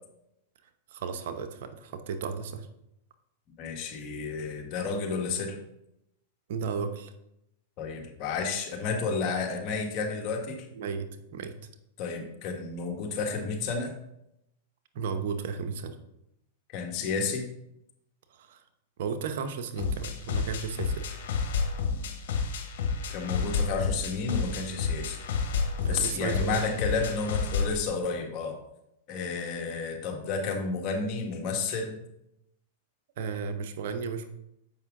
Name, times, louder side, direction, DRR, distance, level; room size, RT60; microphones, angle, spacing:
voice 1, 0.9-2.7 6.5-7.1 10.7-11.5 14.9-16.0 18.3-18.6 19.0-21.0 25.8-26.6 33.2-34.3, right 5 dB, 65° right, 8 dB, 0.8 m, -34 dB
voice 2, 3.6-5.6 7.8-10.6 12.0-13.9 16.7-17.5 23.1-25.2 25.9-28.6 29.1-32.0, left 4 dB, 45° left, 2 dB, 1.5 m, -31 dB
sound 1, 19.8-27.8, left 5 dB, 65° left, 1.3 m, -30 dB
7.2 x 5.3 x 3.7 m, 0.83 s
hypercardioid pair, 115°, 0 cm